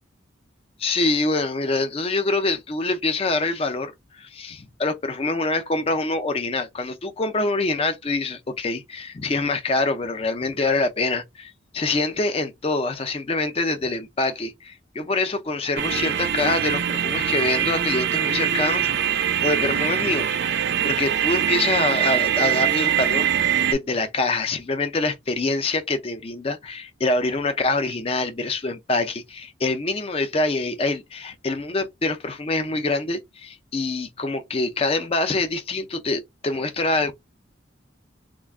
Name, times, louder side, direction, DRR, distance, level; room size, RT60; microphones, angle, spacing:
voice 1, 0.8-19.0 19.4-37.1, left 3 dB, 30° left, 0.4 m, -25 dB
sound 1, 15.8-23.7, right 9 dB, 60° right, 0.4 m, -23 dB
2.4 x 2.2 x 3.3 m
head